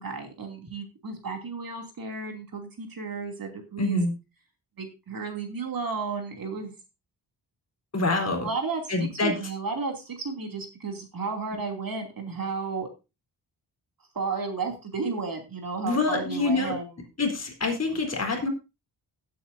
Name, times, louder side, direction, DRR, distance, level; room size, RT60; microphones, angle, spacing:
voice 1, 0.0-4.0 4.8-6.7 8.4-8.8 9.2-12.9 14.1-16.9, right 4 dB, 55° right, 3 dB, 2.9 m, -33 dB
voice 2, 3.8-4.1 7.9-8.5 8.9-9.4 15.8-16.8 17.2-18.5, left 3 dB, 35° left, 3 dB, 3.8 m, -26 dB
17.0 x 8.4 x 2.7 m, 0.27 s
wide cardioid pair, 120°, 42 cm